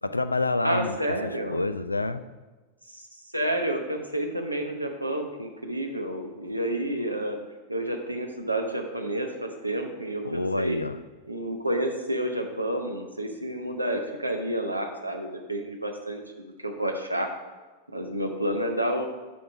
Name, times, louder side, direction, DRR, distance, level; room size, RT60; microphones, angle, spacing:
voice 1, 0.0-1.0 1.2-2.2 10.2-11.0, left 2 dB, 80° left, 12 dB, 0.3 m, -28 dB
voice 2, 0.6-1.6 2.9-3.1 3.3-7.4 7.7-10.8 11.3-17.3 17.9-19.1, right 1 dB, 85° right, 4 dB, 0.9 m, -30 dB
7.1 x 4.7 x 5.9 m, 1.3 s
figure-of-eight pair, 90°, 0 cm